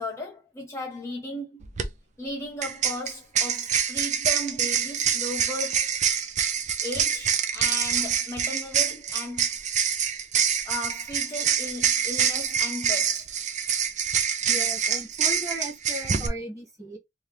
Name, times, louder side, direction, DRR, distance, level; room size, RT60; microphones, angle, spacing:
voice 1, 0.0-1.6 2.2-5.9 6.8-9.5 10.6-13.3, left 1 dB, 15° left, 0.8 m, -35 dB
sound 1, 1.6-1.9 2.6-16.3, right 7 dB, 40° right, 0.6 m, -26 dB
voice 2, 14.5-17.0, right 1 dB, 20° right, 1.7 m, -36 dB
3.5 x 2.8 x 3.1 m
head